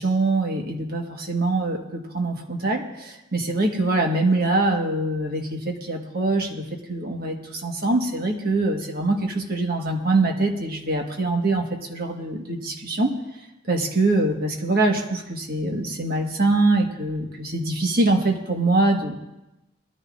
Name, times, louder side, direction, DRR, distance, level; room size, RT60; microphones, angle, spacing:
voice 1, 0.0-13.1 13.7-19.1, right 2 dB, 45° right, 2 dB, 1.5 m, -23 dB
21.0 x 13.5 x 2.5 m, 0.93 s
head